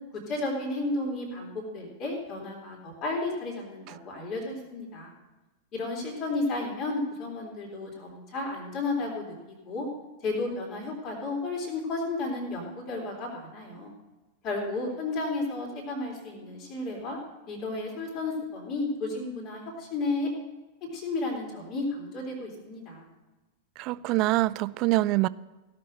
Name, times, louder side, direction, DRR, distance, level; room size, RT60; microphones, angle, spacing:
voice 1, 0.3-5.1 5.7-9.4 9.7-9.9 10.2-13.9 14.4-17.2 17.5-20.3 20.8-23.1, left 2 dB, 35° left, 3.6 m, -33 dB
voice 2, 23.8-25.3, right 18 dB, 40° right, 0.3 m, -25 dB
17.0 x 6.8 x 6.5 m
figure-of-eight pair, 90°, 0 cm